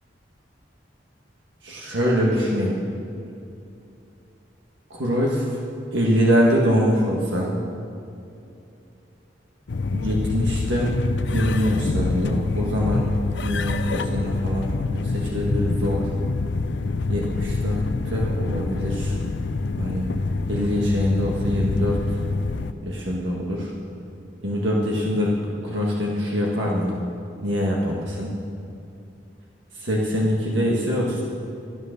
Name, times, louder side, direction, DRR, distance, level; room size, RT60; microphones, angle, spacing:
voice 1, 1.6-2.8 4.9-5.5 5.9-7.5 9.9-10.9 11.3-13.0 13.4-16.0 17.1-17.8 18.0-19.2 19.7-20.1 20.5-22.0 22.8-23.7 24.4-27.0 27.4-28.3 29.8-31.2, equal, 85° right, -3 dB, 1.7 m, -23 dB
sound 1, 9.7-22.7, left 3 dB, 70° left, 0.6 m, -26 dB
12.5 x 12.5 x 6.7 m, 2.7 s
head